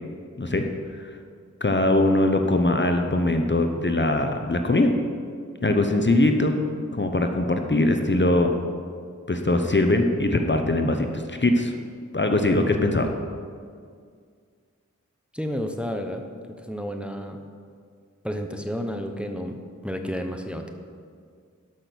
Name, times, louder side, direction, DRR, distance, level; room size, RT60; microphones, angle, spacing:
voice 1, 1.6-4.9 5.6-6.6 6.9-8.5 9.3-11.7 12.1-13.1, left 2 dB, 35° left, 5 dB, 0.9 m, -21 dB
voice 2, 15.3-16.2 16.6-17.4 18.2-20.7, equal, 5° right, 4 dB, 0.9 m, -31 dB
12.0 x 6.2 x 6.2 m, 2.1 s
wide cardioid pair, 60°, 31 cm